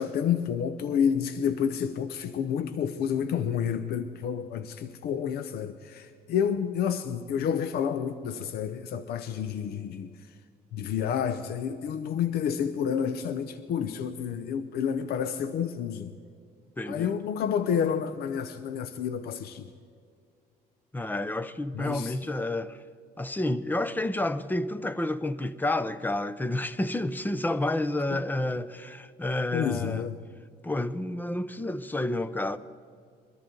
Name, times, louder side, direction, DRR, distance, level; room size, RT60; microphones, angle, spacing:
voice 1, 0.0-10.1 10.7-16.1 16.9-19.7 21.7-22.2 28.1-28.2 29.5-30.2, left 8 dB, 70° left, 0.7 m, -29 dB
voice 2, 16.8-17.2 20.9-22.8 23.2-30.0 30.6-32.6, left 1 dB, 10° left, 0.6 m, -30 dB
22.5 x 13.5 x 3.8 m
cardioid pair, 110°, 17 cm